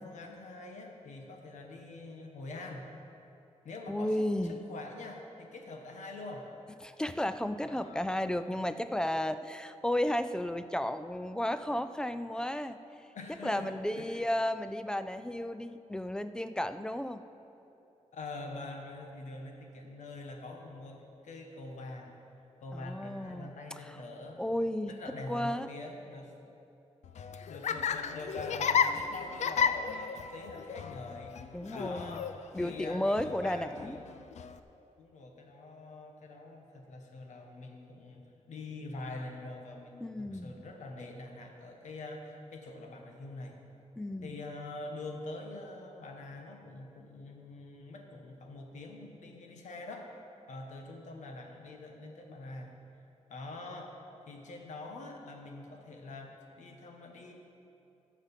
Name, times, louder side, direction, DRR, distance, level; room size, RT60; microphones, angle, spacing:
voice 1, 0.0-2.9 3.6-6.5 7.6-8.1 13.1-14.3 18.1-22.2 22.6-24.4 24.8-26.3 27.4-31.4 31.7-34.0 35.0-43.6 44.2-50.1 50.5-52.7 53.3-54.0 54.3-57.3, left 2 dB, 90° left, 2 dB, 1.4 m, -45 dB
voice 2, 3.9-4.6 6.8-12.8 13.4-17.2 22.7-23.5 23.8-24.0 24.4-24.9 25.3-25.7 31.5-32.2 32.5-34.0 40.0-40.5 44.0-44.4, left 1 dB, 5° left, 11 dB, 0.3 m, -33 dB
Laughter, 27.0-34.6, left 6 dB, 75° left, 0.4 m, -33 dB
15.0 x 5.1 x 7.3 m, 2.8 s
wide cardioid pair, 155°, 12 cm